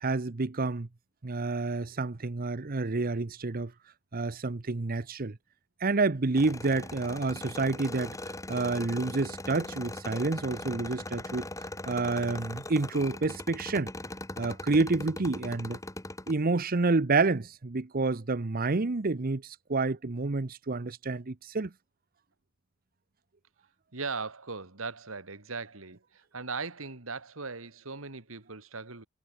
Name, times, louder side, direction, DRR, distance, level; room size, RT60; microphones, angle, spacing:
voice 1, 0.0-0.9 1.2-3.7 4.1-5.4 5.8-8.2 8.5-11.5 11.9-13.9 14.4-15.8 16.3-21.7, right 3 dB, 45° right, 0.8 m, -29 dB
sound 1, 6.4-16.3, left 2 dB, 15° left, 2.2 m, -40 dB
voice 2, 23.9-29.1, right 4 dB, 80° right, 2.3 m, -39 dB
head